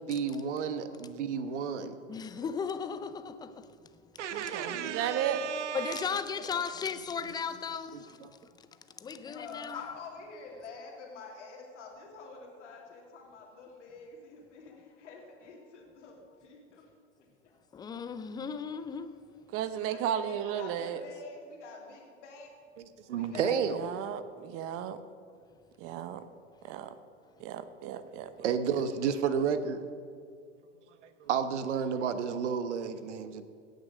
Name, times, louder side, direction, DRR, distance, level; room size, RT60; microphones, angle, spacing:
voice 1, 0.0-2.1 4.2-6.0 22.8-23.8 28.4-29.8 31.2-33.4, right 7 dB, 70° right, 1.1 m, -32 dB
voice 2, 2.1-3.7 4.2-4.5 5.7-8.7 9.0-10.0 17.7-19.2, left 6 dB, 10° left, 0.5 m, -36 dB
voice 3, 4.3-5.4 19.5-21.0 23.7-25.0 25.8-26.2 26.6-26.9 27.4-28.3, right 10 dB, 40° right, 0.9 m, -34 dB
voice 4, 5.3-5.8 6.4-6.5 9.3-16.9 19.7-22.5 23.1-23.7, left 4 dB, 75° left, 2.6 m, -47 dB
17.5 x 6.7 x 6.3 m
hypercardioid pair, 110°, 36 cm